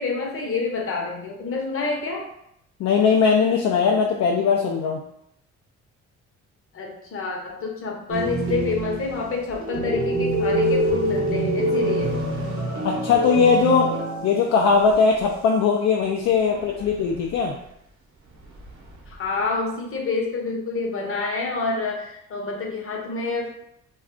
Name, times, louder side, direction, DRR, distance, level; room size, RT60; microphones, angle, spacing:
voice 1, 0.0-2.3 6.7-12.2 16.5-16.9 19.1-23.7, left 4 dB, 45° left, 0 dB, 0.8 m, -28 dB
voice 2, 2.8-5.0 12.8-13.9 14.2-17.5, left 5 dB, 65° left, 0 dB, 0.4 m, -19 dB
sound 1, 8.1-14.6 14.9-15.0 16.7-17.4 18.4-19.1, right 1 dB, 45° right, 0.8 m, -25 dB
2.3 x 2.3 x 3.6 m, 0.75 s
cardioid pair, 90°, 30 cm